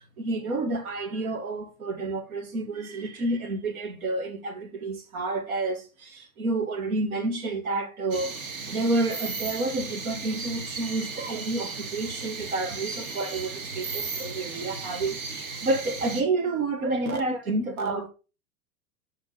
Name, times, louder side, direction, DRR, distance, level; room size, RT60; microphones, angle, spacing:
voice 1, 0.2-8.3 8.7-18.1, right 2 dB, 85° right, 1.6 m, -29 dB
sound 1, 8.1-16.2, right 4 dB, 45° right, 1.7 m, -35 dB
5.6 x 5.2 x 3.9 m
hypercardioid pair, 120°, 41 cm